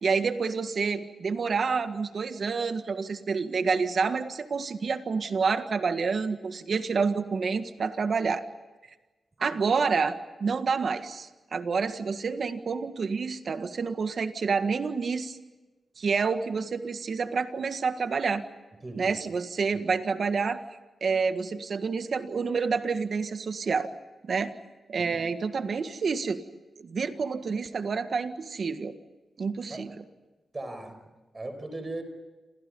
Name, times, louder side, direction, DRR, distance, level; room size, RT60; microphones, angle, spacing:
voice 1, 0.0-8.4 9.4-15.4 16.0-18.4 18.9-20.6 21.0-23.9 24.2-24.5 24.9-26.4 26.8-28.9 29.4-30.0, right 5 dB, 50° right, 9 dB, 1.7 m, -28 dB
voice 2, 18.8-19.2 19.7-19.8 25.0-25.2 29.7-29.8 30.5-32.0, right 2 dB, 25° right, 7 dB, 5.8 m, -39 dB
28.5 x 28.0 x 5.5 m, 1.2 s
wide cardioid pair, 130°, 0 cm